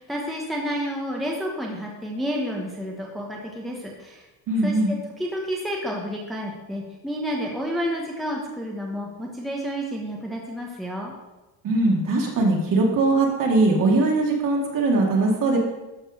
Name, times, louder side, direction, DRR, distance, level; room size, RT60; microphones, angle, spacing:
voice 1, 0.0-4.3 4.6-11.1, equal, ahead, -1 dB, 1.1 m, -30 dB
voice 2, 4.5-4.9 11.6-15.6, right 2 dB, 45° right, -1 dB, 2.4 m, -20 dB
12.5 x 4.5 x 6.5 m, 1.1 s
cardioid pair, 160°, 45 cm